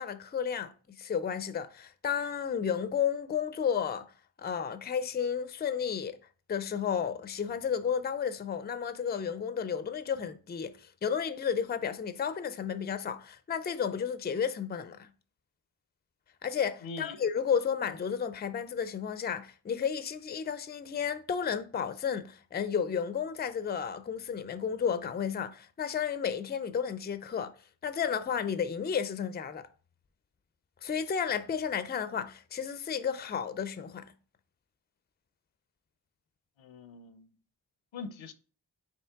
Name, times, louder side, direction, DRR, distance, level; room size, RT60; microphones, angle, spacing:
voice 1, 0.0-4.1 4.4-6.2 6.5-15.1 16.4-27.5 27.8-29.7 30.8-34.1, left 7 dB, 25° left, 0.3 m, -32 dB
voice 2, 16.8-17.3 36.6-37.3 37.9-38.3, left 4 dB, 85° left, 0.6 m, -42 dB
4.5 x 3.0 x 3.5 m
cardioid pair, 45°, 45 cm